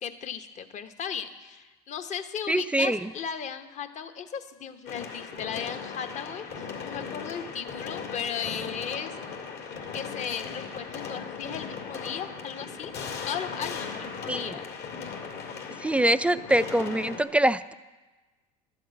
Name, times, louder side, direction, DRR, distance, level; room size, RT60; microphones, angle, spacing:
voice 1, 0.0-9.2 9.9-12.9 13.2-14.7, left 7 dB, 40° left, 9 dB, 1.0 m, -36 dB
voice 2, 2.5-3.1 14.3-14.6 15.8-17.7, right 1 dB, 5° right, 13 dB, 0.3 m, -24 dB
sound 1, 4.9-17.2, left 5 dB, 65° left, 2.4 m, -38 dB
12.0 x 7.8 x 8.7 m, 1.2 s
supercardioid pair, 100°, 19 cm